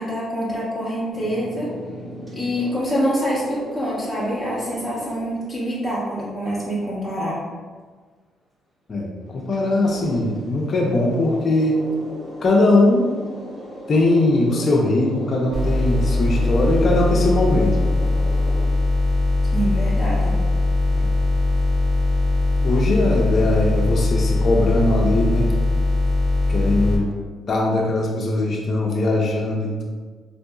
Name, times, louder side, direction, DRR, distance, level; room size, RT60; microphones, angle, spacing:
voice 1, 0.0-1.7 2.3-7.4 19.5-20.4, equal, ahead, -9 dB, 0.9 m, -25 dB
sound 1, 1.1-5.7 9.4-18.7, equal, 20° right, 1.2 m, -37 dB
voice 2, 8.9-11.8 12.4-13.1 13.9-17.8 20.9-21.1 22.6-25.5 26.5-27.1 27.5-29.8, left 2 dB, 45° left, -1 dB, 0.5 m, -20 dB
sound 2, 15.5-27.0, left 2 dB, 60° right, 1.4 m, -20 dB
3.7 x 2.6 x 2.3 m, 1.5 s
cardioid pair, 90°, 0 cm